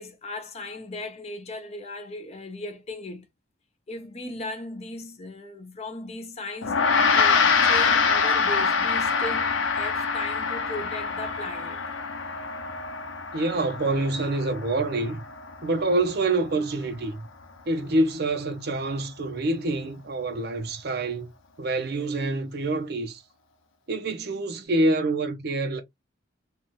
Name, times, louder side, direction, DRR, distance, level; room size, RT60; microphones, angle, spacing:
voice 1, 0.0-3.2 3.9-11.9, left 2 dB, 30° left, 0.6 m, -37 dB
Gong, 6.6-16.2, left 5 dB, 75° left, 0.6 m, -25 dB
voice 2, 13.3-15.2 15.6-17.3 17.7-21.3 21.6-23.2 23.9-25.8, right 2 dB, 55° right, 0.5 m, -26 dB
2.6 x 2.3 x 3.0 m
head